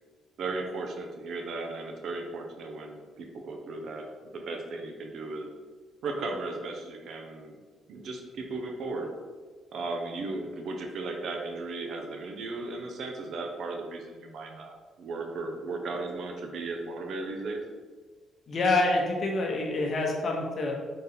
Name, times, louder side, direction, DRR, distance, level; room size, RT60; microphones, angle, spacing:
voice 1, 0.4-5.5 6.0-7.6 7.9-9.1 9.7-17.6, right 3 dB, 70° right, 2 dB, 0.6 m, -36 dB
voice 2, 18.5-20.7, left 2 dB, 50° left, 0 dB, 0.9 m, -26 dB
4.0 x 2.6 x 4.0 m, 1.4 s
cardioid pair, 90°, 0 cm